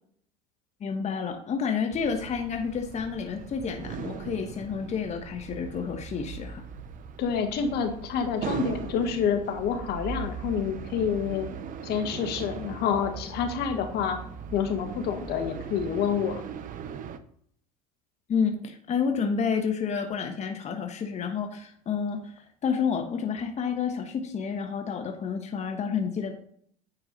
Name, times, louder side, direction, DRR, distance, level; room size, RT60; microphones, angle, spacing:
voice 1, 0.8-6.6 18.3-26.4, left 6 dB, 35° left, 5 dB, 1.1 m, -30 dB
sound 1, 1.9-17.2, right 6 dB, 45° right, 0.8 m, -39 dB
voice 2, 7.2-11.5 11.8-14.2 14.5-16.4, left 7 dB, 60° left, 6 dB, 1.6 m, -28 dB
9.9 x 4.6 x 4.0 m, 0.64 s
hypercardioid pair, 85°, 19 cm